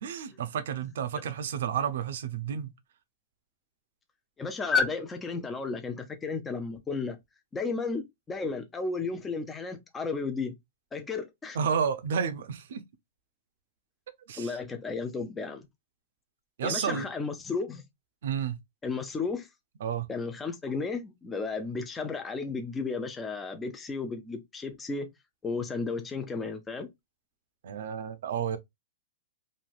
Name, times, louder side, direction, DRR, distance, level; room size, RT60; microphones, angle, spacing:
voice 1, 0.0-2.7 11.5-12.8 14.3-14.5 16.6-17.1 18.2-18.5 19.8-20.1 27.6-28.6, right 7 dB, 70° right, 0.6 m, -31 dB
voice 2, 4.4-7.2 7.5-10.5 10.9-11.6 14.4-15.7 16.6-17.8 18.8-19.5 20.1-25.1 25.4-26.9, left 4 dB, 10° left, 0.4 m, -33 dB
3.2 x 2.6 x 2.3 m
hypercardioid pair, 150°, 0 cm